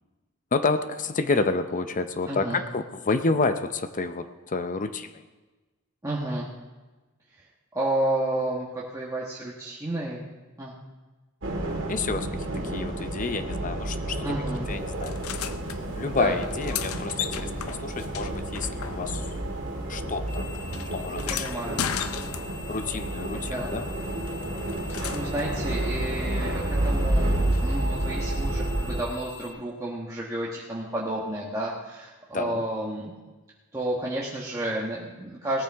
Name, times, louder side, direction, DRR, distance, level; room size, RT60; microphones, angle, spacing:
voice 1, 0.5-5.2 11.9-12.3 12.6-14.3 14.7-15.2 16.0-19.3 19.9-20.5 20.9-21.9 22.7-23.9 32.3-32.6, left 3 dB, 40° left, 10 dB, 0.7 m, -29 dB
voice 2, 2.3-2.6 6.0-6.5 7.3-7.5 7.7-10.2 10.6-10.7 14.2-14.7 16.0-16.4 21.3-21.8 23.3-23.7 24.9-33.1 33.7-35.6, right 1 dB, 15° right, -5 dB, 1.3 m, -31 dB
sound 1, 11.4-29.0, right 1 dB, 60° right, 2.3 m, -30 dB
sound 2, 15.0-15.8 16.4-19.4 19.6-22.8 24.3-25.5 27.5-27.6, left 9 dB, 90° left, 0.6 m, -35 dB
sound 3, 20.3-29.5, left 5 dB, 5° left, 3.8 m, -46 dB
18.5 x 13.5 x 3.5 m, 1.2 s
head